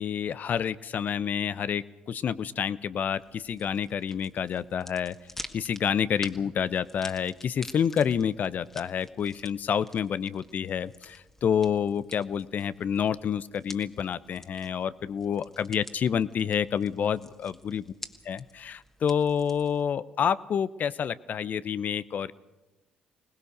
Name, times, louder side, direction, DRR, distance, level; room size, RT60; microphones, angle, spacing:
voice 1, 0.0-5.2 5.5-17.8 18.3-22.3, left 8 dB, 55° left, 17 dB, 0.8 m, -28 dB
sound 1, 3.1-19.8, left 1 dB, 10° left, 2.0 m, -49 dB
21.5 x 20.0 x 6.7 m, 1.0 s
hypercardioid pair, 50°, 3 cm